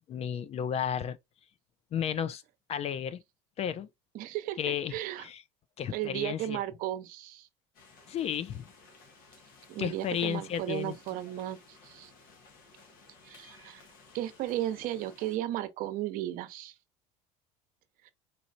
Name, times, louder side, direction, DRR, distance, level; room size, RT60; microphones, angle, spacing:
voice 1, 0.1-1.2 1.9-2.4 2.7-3.2 3.6-3.9 4.6-4.9 5.2-5.4 5.8-6.6 8.1-8.7 9.8-11.0, left 9 dB, 40° left, 0.4 m, -33 dB
voice 2, 4.1-4.6 4.9-5.3 5.9-7.5 9.7-12.1 13.2-13.9 14.1-16.8 18.0-18.1, right 14 dB, 60° right, 0.7 m, -35 dB
sound 1, 7.7-15.4, left 4 dB, 65° left, 1.3 m, -57 dB
4.0 x 3.1 x 2.5 m
supercardioid pair, 90°, 16 cm